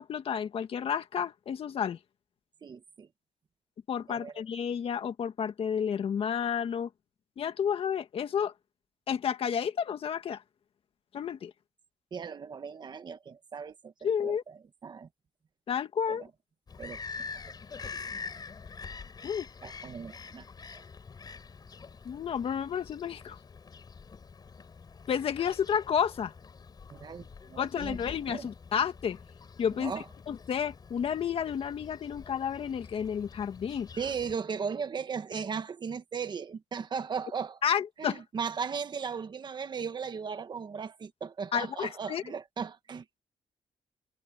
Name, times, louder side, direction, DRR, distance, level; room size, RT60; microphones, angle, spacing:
voice 1, 0.0-2.0 3.9-6.9 7.4-8.5 9.1-10.4 11.1-11.5 14.0-14.4 15.7-16.2 19.2-19.5 22.0-23.4 25.1-26.3 27.6-29.2 29.6-29.9 30.3-33.9 37.6-38.2 41.5-42.2, left 8 dB, 55° left, 1.9 m, -31 dB
voice 2, 2.6-3.1 4.1-4.3 12.1-13.9 14.2-15.1 16.1-16.3 16.8-17.4 17.8-17.9 19.6-20.4 20.7-20.8 26.9-28.0 28.3-28.5 29.8-30.0 34.0-37.6 38.0-43.2, right 6 dB, 40° right, 1.5 m, -37 dB
Bird vocalization bird call bird song, 16.7-34.4, left 5 dB, 35° left, 4.6 m, -46 dB
cardioid pair, 120°, 11 cm